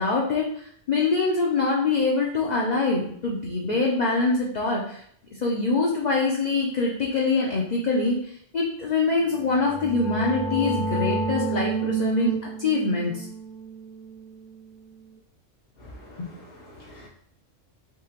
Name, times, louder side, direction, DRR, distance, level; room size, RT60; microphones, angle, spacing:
voice 1, 0.0-5.0 5.4-13.3 16.2-16.3, left 3 dB, 50° left, -3 dB, 0.5 m, -24 dB
sound 1, 9.3-14.9, right 3 dB, 90° right, 1.4 m, -30 dB
voice 2, 15.8-17.1, left 1 dB, 65° left, -6 dB, 1.3 m, -46 dB
3.7 x 2.8 x 2.8 m, 0.65 s
omnidirectional pair, 1.3 m